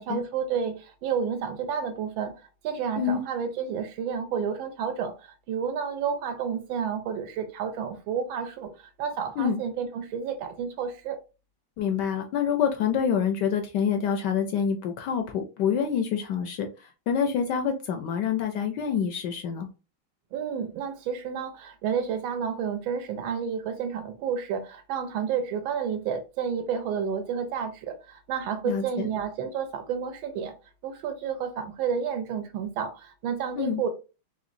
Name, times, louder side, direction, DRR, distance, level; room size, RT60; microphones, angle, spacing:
voice 1, 0.0-11.2 20.3-30.5 30.8-33.9, right 7 dB, 80° right, 1.4 m, -31 dB
voice 2, 11.8-19.7 28.6-29.1 33.6-33.8, left 7 dB, 75° left, 1.0 m, -27 dB
3.8 x 3.1 x 2.5 m
omnidirectional pair, 2.2 m